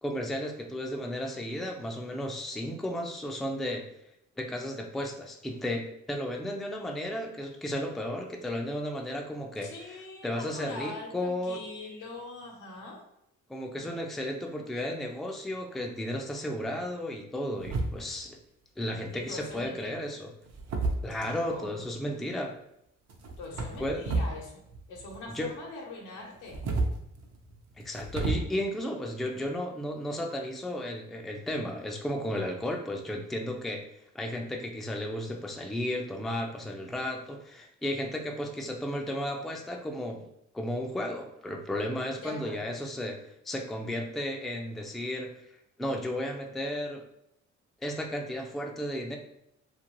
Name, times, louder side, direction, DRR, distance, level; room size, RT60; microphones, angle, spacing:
voice 1, 0.0-3.8 4.4-11.6 13.5-18.4 18.8-20.3 21.0-22.6 23.8-24.0 25.3-25.5 27.8-33.8 34.1-40.3 40.5-45.3 45.8-47.0 47.8-49.2, left 1 dB, ahead, 2 dB, 0.4 m, -34 dB
voice 2, 9.6-13.0 19.1-20.1 21.2-21.8 23.4-24.6 24.9-26.7 42.2-42.8, left 3 dB, 85° left, 0 dB, 0.8 m, -42 dB
sound 1, 17.6-18.3 19.3-19.7 20.4-21.6 23.1-24.4 24.7-25.5 26.3-28.3, right 3 dB, 60° right, 0.6 m, -32 dB
2.5 x 2.5 x 3.0 m, 0.77 s
cardioid pair, 90°, 30 cm